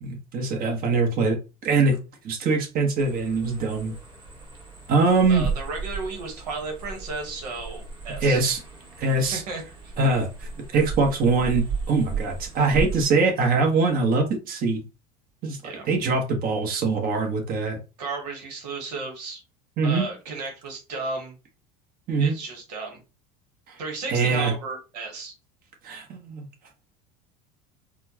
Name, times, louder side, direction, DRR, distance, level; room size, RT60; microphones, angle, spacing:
voice 1, 0.0-1.4 1.6-2.0 2.2-3.9 4.9-5.5 8.2-8.6 9.0-9.4 10.0-14.8 15.4-15.6 15.9-17.8 19.8-20.0 22.1-22.3 24.1-24.5 25.8-26.5, right 3 dB, 45° right, 2 dB, 1.3 m, -23 dB
sound 1, 3.0-13.1, right 4 dB, 20° right, 1.8 m, -35 dB
voice 2, 5.3-8.4 9.3-9.9 15.6-15.9 18.0-19.4 19.8-21.3 22.2-23.0 23.8-25.3, right 3 dB, 90° right, 2 dB, 1.2 m, -34 dB
4.2 x 2.3 x 2.9 m, 0.29 s
supercardioid pair, 95°, 20 cm